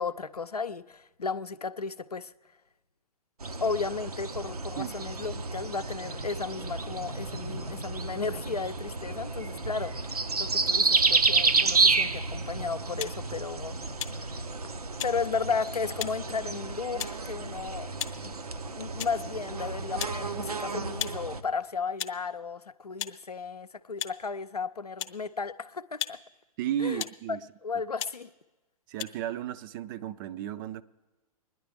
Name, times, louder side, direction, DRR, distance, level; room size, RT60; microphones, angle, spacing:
voice 1, 0.0-2.3 3.6-13.8 14.1-14.3 15.0-17.9 18.2-18.3 18.8-26.2 26.8-27.0 27.6-28.3, left 5 dB, 90° left, 0.5 m, -34 dB
sound 1, 3.4-21.4, right 4 dB, 80° right, 0.7 m, -30 dB
sound 2, 13.0-13.2 14.0-14.2 15.0-15.1 16.0-16.2 17.0-17.1 18.0-18.2 19.0-19.2 20.0-20.2 21.0-21.2 22.0-22.2 23.0-23.2 24.0-24.1 25.0-25.2 26.0-26.2 27.0-27.2 28.0-28.1 29.0-29.1, left 12 dB, 45° left, 0.8 m, -35 dB
voice 2, 26.6-27.5 27.7-27.8 28.9-30.8, right 10 dB, 35° right, 0.4 m, -34 dB
24.5 x 10.5 x 3.4 m
figure-of-eight pair, 110°, 19 cm